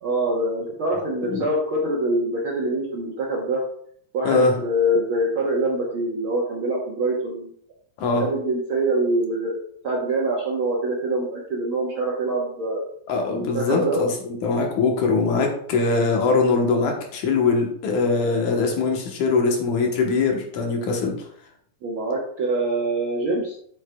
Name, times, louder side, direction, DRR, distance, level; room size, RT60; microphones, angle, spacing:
voice 1, 0.0-3.6 4.1-7.5 8.2-12.8 13.3-14.0 21.8-23.6, right 1 dB, 65° right, -3 dB, 1.3 m, -24 dB
voice 2, 13.1-21.3, left 4 dB, 75° left, 2 dB, 2.5 m, -22 dB
8.2 x 7.1 x 2.3 m, 0.64 s
omnidirectional pair, 3.6 m